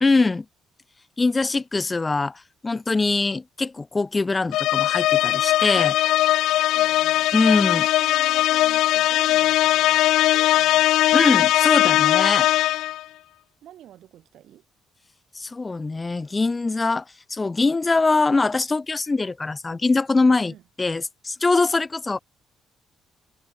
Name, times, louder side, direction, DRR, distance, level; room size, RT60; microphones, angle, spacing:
voice 1, 0.0-0.5 1.2-6.0 7.3-7.9 11.1-12.5 15.3-17.0 17.3-22.2, left 3 dB, 15° left, 0.6 m, -22 dB
sound 1, 4.5-13.0, left 14 dB, 75° left, 0.6 m, -19 dB
voice 2, 6.6-7.3 7.6-7.7 8.0-10.9 13.6-14.6 20.3-20.6, right 12 dB, 55° right, 7.8 m, -47 dB
cardioid pair, 180°, 0 cm